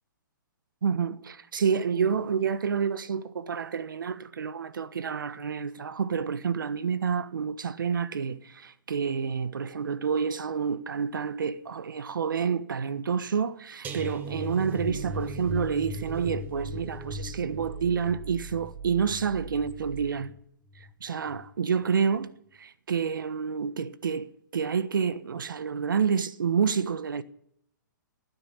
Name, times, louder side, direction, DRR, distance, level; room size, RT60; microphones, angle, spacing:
voice 1, 0.8-20.3 20.7-22.3 22.6-27.2, right 6 dB, 80° right, 1.3 m, -29 dB
sound 1, 13.8-20.9 21.3-21.6 21.9-22.0, left 1 dB, 15° right, 1.6 m, -39 dB
sound 2, 14.8-20.1, right 5 dB, 60° right, 3.3 m, -43 dB
16.5 x 9.8 x 8.8 m
hypercardioid pair, 140°, 11 cm